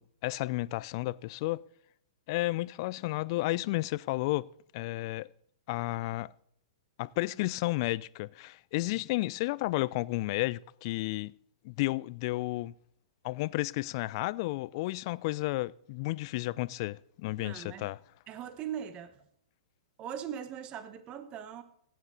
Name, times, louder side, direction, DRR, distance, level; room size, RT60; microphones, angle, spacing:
voice 1, 0.0-1.6 2.3-4.5 4.7-5.3 5.7-6.3 7.0-11.3 11.6-12.7 13.2-18.0, left 20 dB, 45° left, 0.4 m, -32 dB
voice 2, 17.4-17.9 18.3-19.1 20.0-21.6, right 9 dB, 30° right, 1.0 m, -40 dB
16.0 x 9.5 x 4.0 m
hypercardioid pair, 115°, 4 cm